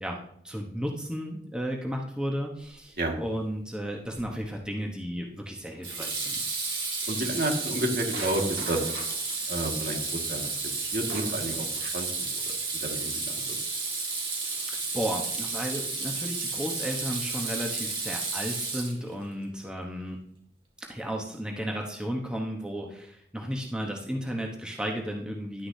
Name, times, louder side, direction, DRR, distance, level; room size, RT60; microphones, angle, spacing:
voice 1, 0.4-6.4 14.4-20.2 20.8-25.7, equal, 5° right, 0 dB, 1.0 m, -34 dB
Water tap faucet / Sink (filling or washing), 4.2-4.5 5.8-19.3, right 3 dB, 30° right, 2.2 m, -32 dB
voice 2, 7.1-8.9 9.5-10.5 10.8-12.3 12.8-13.5, right 1 dB, 55° right, 1 dB, 1.9 m, -31 dB
sound 1, 8.1-9.6 11.1-11.6, right 2 dB, 90° right, 2.5 m, -41 dB
11.5 x 9.6 x 2.8 m, 0.68 s
head